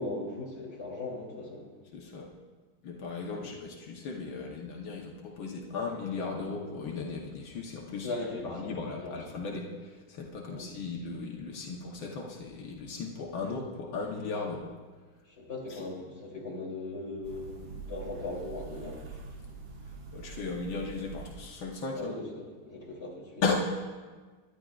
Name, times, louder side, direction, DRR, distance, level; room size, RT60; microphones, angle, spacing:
voice 1, 0.0-1.7 3.3-3.5 8.0-9.2 10.5-10.7 15.3-19.0 22.0-23.4, left 2 dB, 30° left, -4 dB, 3.3 m, -39 dB
voice 2, 1.9-2.3 2.8-8.1 8.4-14.7 15.7-15.8 20.1-22.2 23.4-23.5, left 4 dB, 80° left, -1 dB, 2.0 m, -36 dB
sound 1, 17.2-21.8, right 4 dB, 75° right, 2.6 m, -45 dB
24.5 x 11.5 x 2.5 m, 1.4 s
omnidirectional pair, 2.1 m